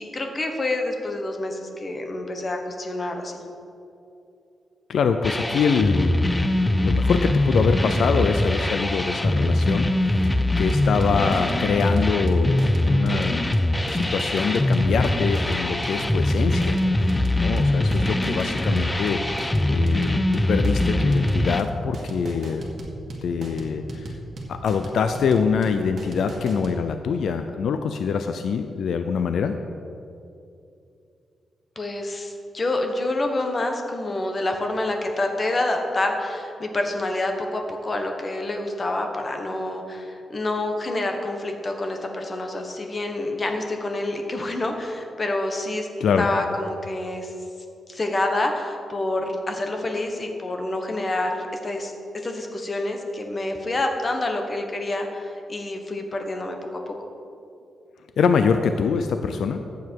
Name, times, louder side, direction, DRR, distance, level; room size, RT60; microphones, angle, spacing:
voice 1, 0.0-3.4 31.7-45.9 46.2-47.3 47.9-51.9 52.2-56.8, left 2 dB, 30° left, 3 dB, 1.4 m, -27 dB
voice 2, 4.9-13.6 13.9-22.6 23.2-24.1 24.5-29.6 46.0-46.3 58.2-59.6, left 6 dB, 75° left, 8 dB, 0.5 m, -24 dB
sound 1, 5.2-21.6, left 1 dB, 15° left, 0.5 m, -22 dB
sound 2, 10.7-26.8, right 2 dB, 55° right, 2.0 m, -36 dB
14.5 x 8.0 x 4.7 m, 2.6 s
cardioid pair, 115°, 0 cm